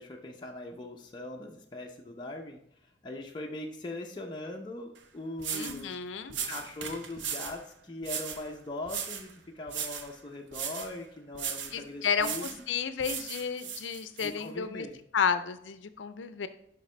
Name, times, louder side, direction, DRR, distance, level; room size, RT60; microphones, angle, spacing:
voice 1, 0.0-2.6 3.0-6.0 6.5-9.3 9.6-12.6 14.2-15.0, left 1 dB, 25° left, 0 dB, 0.6 m, -40 dB
sound 1, 5.0-5.1 5.4-5.8 6.3-7.6 8.0-8.4 8.9-9.3 9.7-10.1 10.5-10.9 11.3-11.8 12.2-12.6 13.0-14.3, right 7 dB, 80° right, 0.7 m, -37 dB
voice 2, 5.5-6.3 11.7-14.9 15.1-16.5, left 6 dB, 85° left, 11 dB, 0.5 m, -32 dB
6.6 x 5.3 x 3.3 m, 0.71 s
head